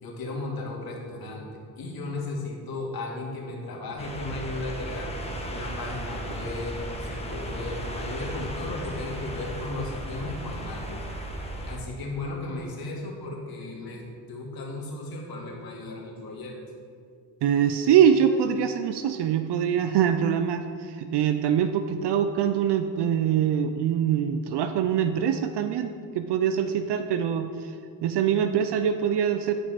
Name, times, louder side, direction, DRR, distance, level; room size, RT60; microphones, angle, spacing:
voice 1, 0.0-1.5 1.8-5.1 5.5-11.2 11.6-14.0 14.3-16.5, left 2 dB, 55° left, -2 dB, 2.2 m, -35 dB
sound 1, 4.0-11.8, right 1 dB, 15° left, 1.4 m, -35 dB
voice 2, 17.4-27.8 28.0-29.5, right 8 dB, 65° right, 8 dB, 0.6 m, -24 dB
9.8 x 5.3 x 5.0 m, 2.2 s
cardioid pair, 75°, 43 cm